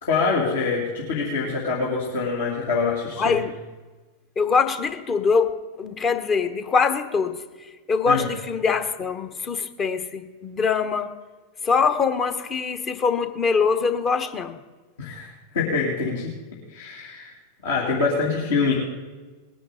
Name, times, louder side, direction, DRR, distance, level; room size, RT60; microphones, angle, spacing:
voice 1, 0.0-3.4 8.0-8.3 15.0-16.3 16.7-17.3 17.6-18.7, left 4 dB, 60° left, -4 dB, 2.5 m, -25 dB
voice 2, 3.2-3.5 4.4-5.5 5.8-7.4 7.9-11.1 11.6-14.6, left 5 dB, 25° left, 9 dB, 1.1 m, -23 dB
20.0 x 10.0 x 3.9 m, 1.3 s
figure-of-eight pair, 90°, 0 cm